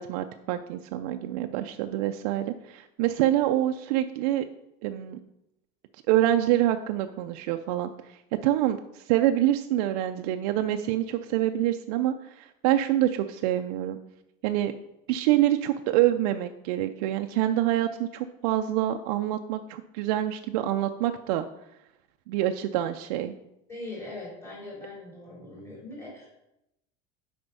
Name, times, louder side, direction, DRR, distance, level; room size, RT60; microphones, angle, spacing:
voice 1, 0.0-4.5 4.8-5.2 6.1-14.0 14.4-14.7 15.1-21.5 22.3-23.3, right 13 dB, 65° right, 6 dB, 0.4 m, -26 dB
voice 2, 23.7-26.3, left 2 dB, 15° left, -5 dB, 2.9 m, -41 dB
6.9 x 5.1 x 5.4 m, 0.87 s
cardioid pair, 175°, 21 cm